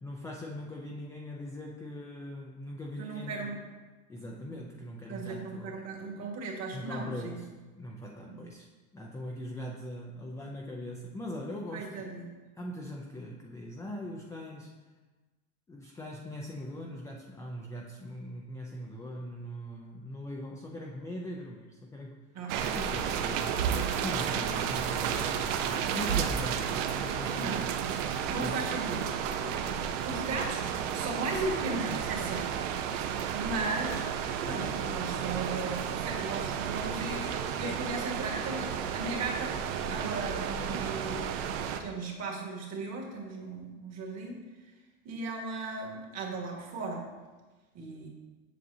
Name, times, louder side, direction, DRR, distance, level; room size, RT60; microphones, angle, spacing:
voice 1, 0.0-3.5 4.1-5.8 6.7-7.5 7.7-8.7 8.9-12.1 12.6-14.7 15.7-22.2 22.7-27.7 28.3-28.6, equal, 10° left, -2 dB, 0.4 m, -41 dB
voice 2, 3.0-3.7 5.1-7.4 8.2-8.5 11.7-12.3 22.3-22.5 27.4-28.0 28.2-29.0 29.4-29.6 30.0-32.6 33.3-34.0 34.4-39.6 39.9-44.4 45.0-47.0 47.7-48.1, right 3 dB, 35° right, 0 dB, 1.6 m, -37 dB
sound 1, 22.5-41.8, right 8 dB, 60° right, 0.7 m, -32 dB
7.7 x 6.6 x 2.7 m, 1.3 s
supercardioid pair, 120°, 43 cm